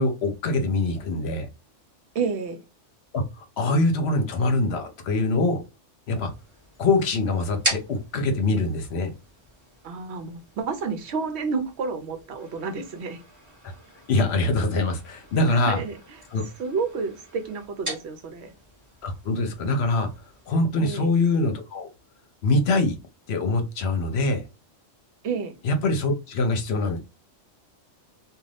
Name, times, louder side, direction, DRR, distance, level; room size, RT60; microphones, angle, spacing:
voice 1, 0.0-1.5 3.1-5.6 6.1-6.3 6.8-9.1 14.1-15.8 16.3-16.4 19.0-20.1 20.5-21.9 22.4-23.0 23.3-24.4 25.6-27.0, left 2 dB, 65° left, 0.9 m, -24 dB
voice 2, 2.1-2.6 9.8-13.2 15.5-16.0 16.6-18.5 20.8-21.1 25.2-25.5, right 5 dB, 70° right, 0.8 m, -30 dB
sound 1, 6.1-20.5, right 1 dB, 15° right, 1.3 m, -40 dB
2.5 x 2.4 x 3.2 m
omnidirectional pair, 1.2 m